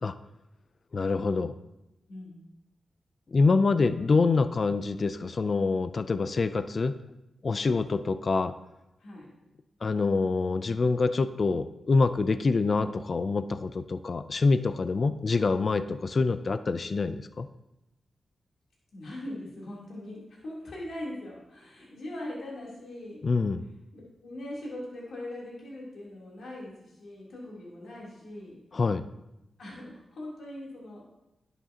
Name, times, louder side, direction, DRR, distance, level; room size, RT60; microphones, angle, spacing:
voice 1, 0.9-1.5 3.3-7.0 7.4-8.5 9.8-17.5 23.2-23.6 28.7-29.0, left 4 dB, 50° left, 12 dB, 0.4 m, -26 dB
voice 2, 2.1-2.4 9.0-9.3 18.9-23.2 23.9-28.6 29.6-31.1, left 1 dB, 80° left, -5 dB, 3.3 m, -41 dB
11.0 x 8.1 x 2.9 m, 0.92 s
cardioid pair, 70°, 0 cm